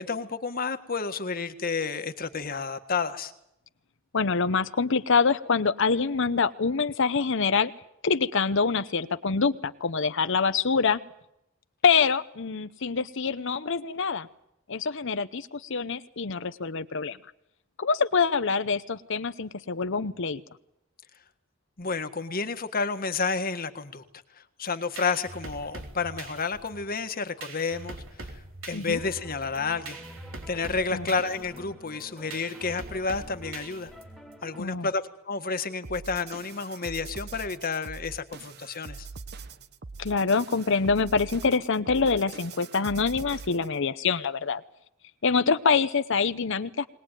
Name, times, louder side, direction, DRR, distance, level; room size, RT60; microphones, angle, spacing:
voice 1, 0.0-3.3 21.8-24.0 24.4-28.4 28.7-30.0 30.5-33.9 34.4-39.1, left 4 dB, 45° left, 8 dB, 1.6 m, -30 dB
voice 2, 4.1-7.7 8.0-11.0 11.8-14.3 14.7-17.2 17.8-20.4 28.7-29.0 30.9-31.1 34.6-34.9 40.0-44.6 45.2-46.9, left 5 dB, 65° left, 12 dB, 0.9 m, -25 dB
sound 1, 24.7-34.3, right 2 dB, 80° right, 4.0 m, -43 dB
sound 2, 28.9-34.6, equal, ahead, 2.3 m, -48 dB
sound 3, 35.8-43.8, right 4 dB, 55° right, 1.0 m, -43 dB
21.5 x 20.0 x 9.1 m, 0.81 s
head